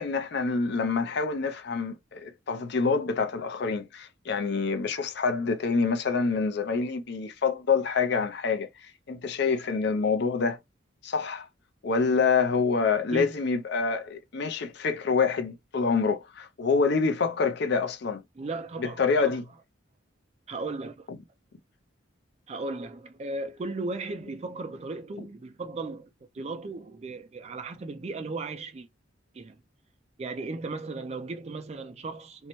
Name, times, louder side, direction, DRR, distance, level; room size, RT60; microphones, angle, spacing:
voice 1, 0.0-8.7 9.1-10.6 11.0-11.5 11.8-18.2 18.8-19.4, left 5 dB, 55° left, 0.5 m, -26 dB
voice 2, 18.4-19.4 20.5-21.1 22.5-26.1 26.3-28.9 29.3-29.6 30.2-32.5, right 3 dB, 35° right, 0.4 m, -36 dB
2.7 x 2.1 x 3.0 m
head